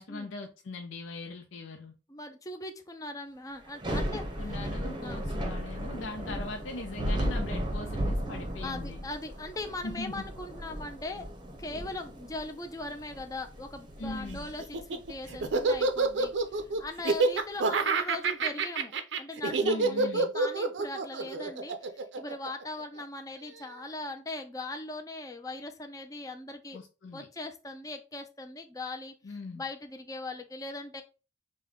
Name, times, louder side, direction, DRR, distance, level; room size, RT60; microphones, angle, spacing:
voice 1, 0.0-1.9 3.9-9.0 9.8-10.3 14.0-14.5 19.6-20.3 26.7-27.3 29.2-29.6, left 2 dB, 90° left, 0.5 m, -40 dB
voice 2, 2.1-4.5 5.0-5.2 8.6-11.3 11.6-18.9 19.2-26.8 27.1-29.1 29.5-31.0, left 2 dB, 20° left, 0.4 m, -40 dB
Thunder / Rain, 3.6-16.8, equal, 25° right, 0.7 m, -36 dB
Laughter, 14.6-23.0, right 3 dB, 65° right, 0.5 m, -27 dB
5.1 x 2.2 x 3.6 m
head